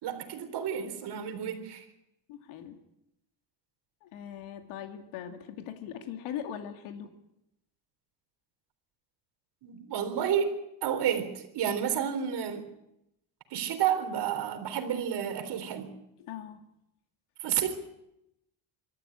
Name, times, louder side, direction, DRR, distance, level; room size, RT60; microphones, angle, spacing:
voice 1, 0.0-1.9 9.6-12.6 13.5-15.9 17.4-17.7, right 9 dB, 55° right, 8 dB, 3.9 m, -31 dB
voice 2, 2.3-2.8 4.0-7.1 16.2-16.6, left 9 dB, 80° left, 6 dB, 2.4 m, -40 dB
24.5 x 13.5 x 9.9 m, 0.84 s
cardioid pair, 135°, 49 cm